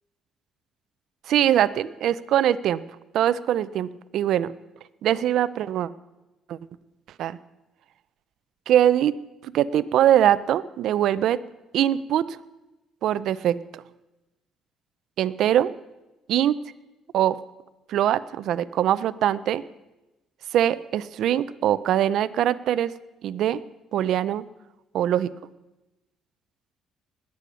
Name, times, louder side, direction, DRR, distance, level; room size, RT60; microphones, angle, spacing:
voice 1, 1.3-2.8 3.1-4.5 5.0-5.9 6.5-6.6 7.2-7.4 8.7-9.2 9.4-11.4 11.7-12.3 13.0-13.8 15.2-15.7 16.3-16.6 17.1-17.4 17.9-19.6 20.5-22.9 23.2-23.6 23.9-24.4 24.9-25.3, right 11 dB, 65° right, 16 dB, 0.5 m, -22 dB
20.0 x 8.4 x 6.3 m, 1.0 s
cardioid pair, 150°, 0 cm